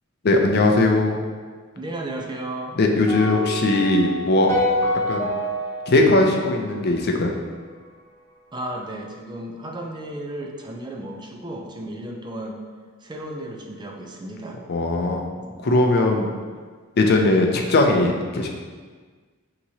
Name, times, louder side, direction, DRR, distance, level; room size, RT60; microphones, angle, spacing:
voice 1, 0.2-1.2 2.8-4.5 5.1-5.3 5.9-7.3 14.7-15.3 15.6-16.3 17.0-18.5, left 2 dB, 50° left, 2 dB, 0.5 m, -19 dB
voice 2, 1.8-2.8 8.5-12.6 13.0-14.6 15.4-15.6, right 1 dB, 20° right, 1 dB, 0.4 m, -34 dB
sound 1, 3.1-7.4, left 1 dB, 15° left, 1.0 m, -27 dB
6.1 x 2.9 x 2.7 m, 1.5 s
head